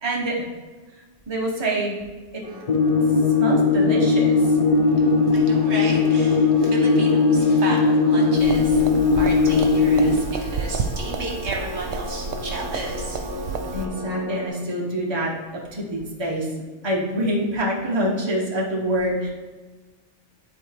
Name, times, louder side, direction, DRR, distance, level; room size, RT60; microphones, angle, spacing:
voice 1, 0.0-0.4 1.3-2.0 2.3-2.6 3.0-4.3 13.7-16.5 16.8-19.3, right 1 dB, 25° right, -3 dB, 1.1 m, -26 dB
sound 1, 2.4-14.5, left 1 dB, 5° right, 2.1 m, -36 dB
sound 2, 2.7-10.2, left 4 dB, 65° left, 0.3 m, -18 dB
voice 2, 5.3-8.8 9.1-13.2, right 2 dB, 65° right, -1 dB, 1.5 m, -33 dB
Coffee machine steam, 8.4-13.9, right 5 dB, 90° right, 1.0 m, -31 dB
10.5 x 4.1 x 3.4 m, 1.3 s
omnidirectional pair, 1.2 m